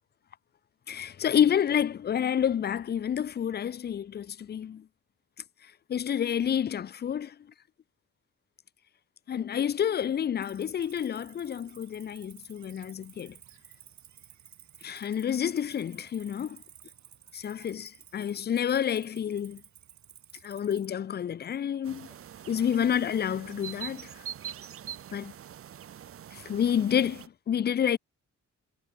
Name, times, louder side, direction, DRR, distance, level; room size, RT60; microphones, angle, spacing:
voice 1, 0.9-4.9 5.9-7.4 9.3-13.4 14.8-16.6 17.3-19.6 20.4-22.1 22.5-24.1 25.1-25.3 26.3-28.0, left 9 dB, 35° left, 0.4 m, -29 dB
Cricket, 10.4-20.9, right 9 dB, 65° right, 5.1 m, -54 dB
sound 1, 21.8-27.3, right 10 dB, 45° right, 0.7 m, -44 dB
wide cardioid pair, 170°, 30 cm